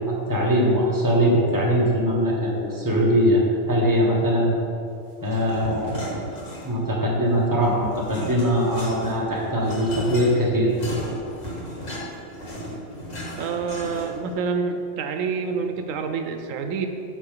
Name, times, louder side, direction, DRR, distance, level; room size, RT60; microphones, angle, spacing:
voice 1, 0.3-3.4 3.7-4.5 5.2-6.2 6.6-10.7, equal, 15° right, -4 dB, 1.4 m, -21 dB
sound 1, 5.2-6.9 7.3-14.3, equal, 80° left, 2.3 m, -35 dB
voice 2, 13.4-16.9, right 5 dB, 85° right, 6 dB, 1.0 m, -27 dB
9.0 x 3.7 x 6.6 m, 2.7 s
omnidirectional pair, 1.3 m